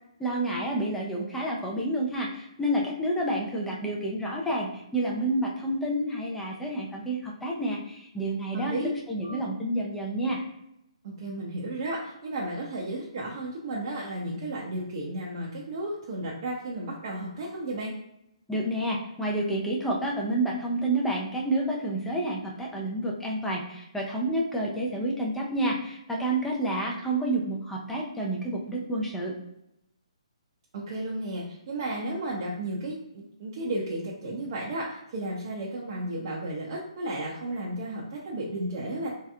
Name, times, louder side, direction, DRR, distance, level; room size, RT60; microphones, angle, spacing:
voice 1, 0.2-8.8 9.1-10.4 18.5-29.3, right 1 dB, 5° left, -3 dB, 0.5 m, -29 dB
voice 2, 8.5-8.9 9.2-9.4 11.0-17.9 30.7-39.1, right 1 dB, 45° right, -4 dB, 0.6 m, -33 dB
3.2 x 2.8 x 2.4 m, 0.81 s
hypercardioid pair, 150°, 3 cm